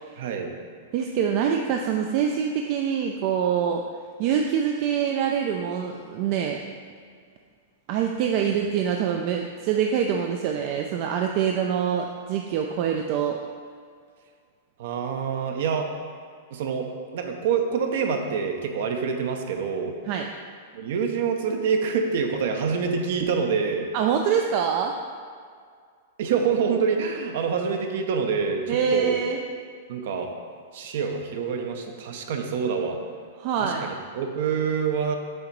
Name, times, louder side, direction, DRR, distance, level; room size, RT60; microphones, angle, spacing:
voice 1, 0.2-0.5 8.4-8.5 14.8-15.9 16.5-20.0 20.7-23.9 26.2-29.2 29.9-30.3 30.7-33.0 33.6-35.2, right 6 dB, 65° right, 4 dB, 0.7 m, -26 dB
voice 2, 0.9-3.8 4.2-6.6 7.9-13.4 20.1-20.3 23.9-25.0 28.7-29.4 33.4-33.8, right 8 dB, 50° right, 3 dB, 0.4 m, -25 dB
7.7 x 2.8 x 4.6 m, 2.1 s
hypercardioid pair, 125°, 0 cm